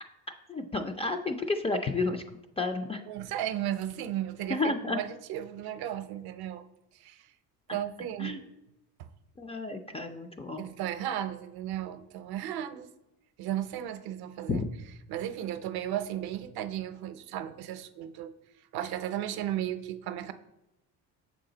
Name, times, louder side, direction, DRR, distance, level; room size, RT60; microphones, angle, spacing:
voice 1, 0.5-2.2 2.6-3.0 4.5-5.0 8.2-8.4 9.4-10.6 14.5-14.7, left 3 dB, 15° left, 6 dB, 0.3 m, -31 dB
voice 2, 3.1-6.6 6.9-7.3 7.7-8.4 9.0-9.1 10.6-12.9 13.4-14.6 15.1-18.3 18.7-20.3, right 11 dB, 70° right, 10 dB, 0.6 m, -35 dB
6.5 x 4.9 x 3.8 m, 0.94 s
cardioid pair, 115°, 40 cm